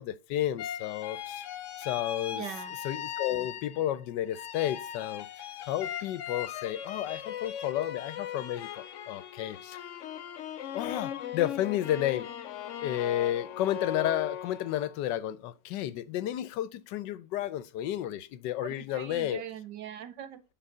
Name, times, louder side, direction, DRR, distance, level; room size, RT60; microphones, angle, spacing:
voice 1, 0.0-1.4 1.8-2.4 2.8-5.3 5.6-9.8 10.7-12.3 12.8-19.4, left 12 dB, 85° left, 1.3 m, -32 dB
sound 1, 0.6-4.0 4.3-14.9, left 10 dB, 60° left, 0.8 m, -39 dB
voice 2, 2.3-2.7 18.6-20.4, right 9 dB, 80° right, 1.7 m, -41 dB
10.0 x 4.0 x 5.4 m
omnidirectional pair, 1.9 m